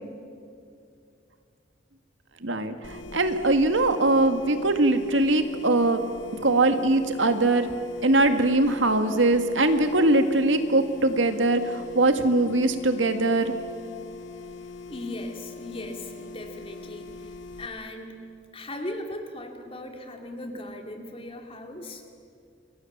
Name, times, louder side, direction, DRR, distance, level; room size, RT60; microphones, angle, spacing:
voice 1, 2.4-6.0 6.4-7.7 8.0-13.5, right 2 dB, 85° right, 8 dB, 1.9 m, -22 dB
sound 1, 2.8-17.7, left 5 dB, 85° left, 1.4 m, -42 dB
voice 2, 14.9-18.3 18.5-22.0, left 1 dB, 30° left, 4 dB, 2.7 m, -38 dB
28.0 x 22.5 x 7.3 m, 2.4 s
head